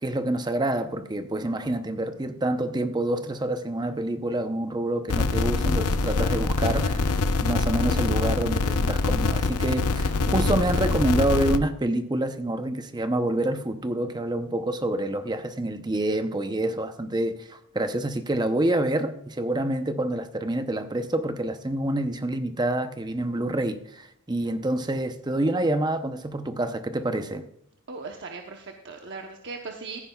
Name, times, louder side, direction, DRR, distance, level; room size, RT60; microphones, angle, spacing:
voice 1, 0.0-7.1 7.4-27.5, right 1 dB, 20° right, 0.6 m, -27 dB
sound 1, 5.1-11.6, left 3 dB, 80° left, 0.6 m, -24 dB
voice 2, 27.9-30.0, right 4 dB, 55° right, 0.9 m, -38 dB
15.5 x 9.9 x 2.3 m
head